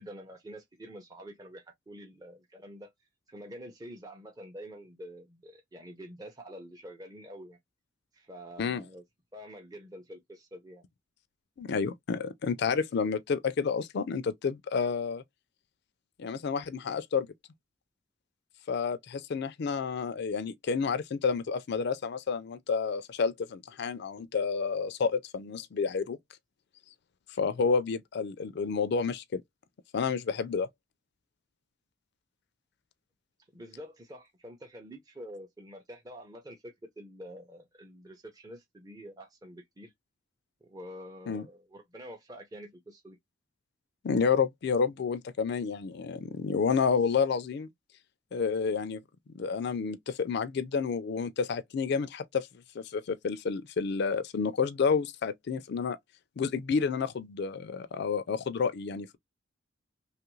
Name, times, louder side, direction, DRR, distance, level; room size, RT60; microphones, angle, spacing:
voice 1, 0.0-2.9 3.3-7.6 8.1-9.0 9.3-10.8 33.5-39.9 40.6-43.2, equal, 20° right, 0.6 m, -47 dB
voice 2, 11.6-15.2 16.2-17.3 18.7-26.2 27.4-29.4 29.9-30.7 41.3-41.5 44.0-47.7 48.3-49.0 49.3-52.5 52.7-56.0 56.4-59.2, left 5 dB, 60° left, 0.4 m, -30 dB
3.0 x 2.4 x 3.0 m
head